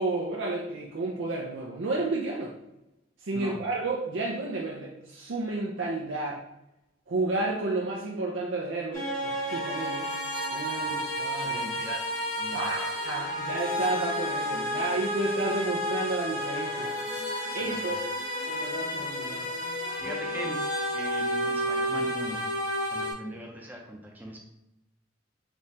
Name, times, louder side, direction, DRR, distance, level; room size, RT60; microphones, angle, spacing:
voice 1, 0.0-2.5 3.2-6.4 7.1-10.1 10.5-11.6 12.5-16.9 17.5-18.1 18.5-19.5, right 2 dB, 75° right, -3 dB, 0.6 m, -31 dB
sound 1, 8.9-23.1, equal, 45° left, 1.4 m, -31 dB
voice 2, 10.6-11.0 11.3-12.6 17.5-17.9 20.0-20.6 20.9-22.4 22.9-24.4, equal, 10° right, -1 dB, 0.7 m, -40 dB
sound 2, 13.0-20.5, left 1 dB, 75° left, 0.9 m, -46 dB
5.2 x 3.1 x 2.8 m, 0.92 s
head